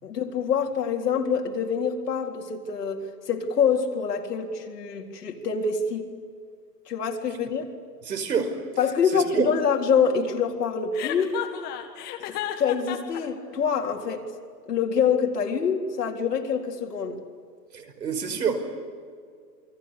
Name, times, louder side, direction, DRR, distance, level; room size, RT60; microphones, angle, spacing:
voice 1, 0.0-6.1 6.9-7.6 8.8-11.3 12.2-14.2 14.7-17.2, left 6 dB, 70° left, 2 dB, 4.0 m, -25 dB
voice 2, 8.1-8.5 9.1-9.4 17.7-18.6, right 6 dB, 75° right, 7 dB, 5.5 m, -27 dB
Chuckle chortle, 10.9-13.2, left 12 dB, 20° left, 1.8 m, -32 dB
28.5 x 22.0 x 8.4 m, 2.1 s
hypercardioid pair, 160°, 50 cm